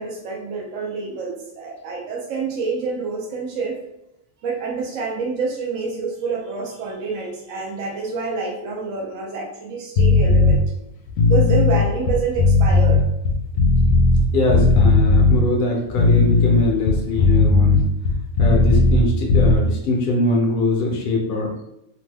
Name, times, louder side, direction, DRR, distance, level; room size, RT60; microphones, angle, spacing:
voice 1, 0.0-3.8 4.4-10.6 11.2-13.0, right 4 dB, 75° right, -1 dB, 1.0 m, -27 dB
sound 1, 10.0-10.6 11.1-14.2 14.5-15.4 15.9-19.0 19.3-19.6, left 3 dB, 80° left, 0.9 m, -15 dB
voice 2, 14.3-17.8 18.4-21.5, left 2 dB, 50° left, -1 dB, 0.7 m, -22 dB
2.9 x 2.1 x 3.2 m, 0.81 s
omnidirectional pair, 1.4 m